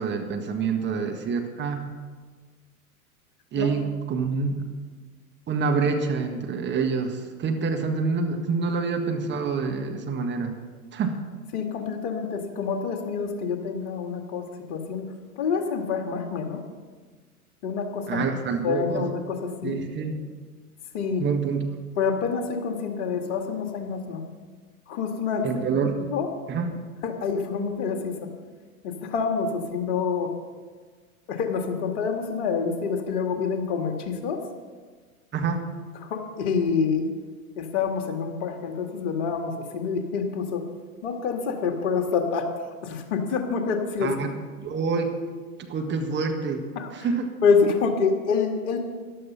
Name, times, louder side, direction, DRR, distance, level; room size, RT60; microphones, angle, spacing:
voice 1, 0.0-2.0 3.5-4.6 5.5-10.5 10.9-11.2 18.1-19.1 19.6-20.2 21.2-21.6 25.4-25.9 26.5-26.7 35.3-35.7 44.0-44.3 44.6-45.2 45.7-46.6 46.9-47.3, right 5 dB, 25° right, 4 dB, 1.5 m, -27 dB
voice 2, 11.5-15.1 15.4-16.6 17.6-18.2 18.6-19.8 20.9-21.3 22.0-24.2 24.9-26.3 27.0-28.3 28.8-30.3 31.3-34.4 36.0-37.1 37.6-40.7 41.0-42.5 42.8-44.1 46.8-46.9 47.4-48.8, left 5 dB, 50° left, 5 dB, 2.1 m, -27 dB
13.5 x 11.5 x 5.7 m, 1.4 s
figure-of-eight pair, 95°, 44 cm